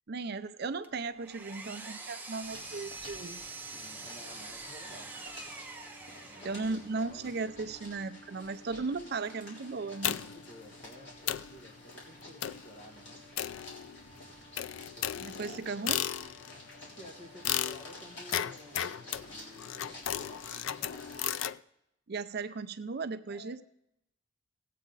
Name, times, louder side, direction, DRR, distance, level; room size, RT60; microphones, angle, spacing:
voice 1, 0.1-3.4 6.4-10.2 15.2-16.1 22.1-23.6, right 4 dB, 55° right, 12 dB, 0.5 m, -36 dB
Power tool, 0.8-6.9, right 3 dB, 10° right, 0.8 m, -45 dB
sound 1, 2.4-21.4, left 1 dB, 65° left, 3.6 m, -50 dB
voice 2, 3.7-5.1 6.2-7.3 10.1-13.2 14.6-16.0 16.9-21.2 23.3-23.6, equal, 40° left, 2 dB, 1.6 m, -53 dB
sound 2, 10.0-10.5 10.9-11.0 11.3-11.6 12.4-12.7 13.4-14.1 14.6-16.6 17.4-21.6, left 11 dB, 90° left, 0.4 m, -35 dB
18.0 x 8.4 x 3.9 m, 0.82 s
head